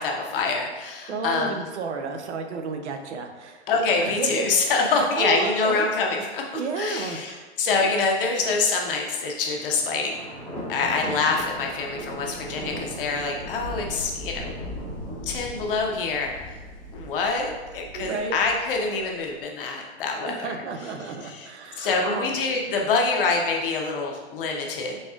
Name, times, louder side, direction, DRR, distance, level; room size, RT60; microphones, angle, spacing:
voice 1, 0.0-1.6 3.7-10.2 10.7-14.5 15.2-16.3 16.9-20.6 21.0-21.5 21.8-25.0, left 4 dB, 50° left, 1 dB, 0.8 m, -25 dB
voice 2, 1.1-3.7 4.0-4.5 4.9-5.8 6.5-7.5 17.9-18.4 20.2-22.3, right 4 dB, 80° right, 5 dB, 0.7 m, -32 dB
Thunder, 9.4-19.3, equal, 5° left, 0.6 m, -38 dB
4.2 x 3.8 x 2.4 m, 1.3 s
hypercardioid pair, 155°, 34 cm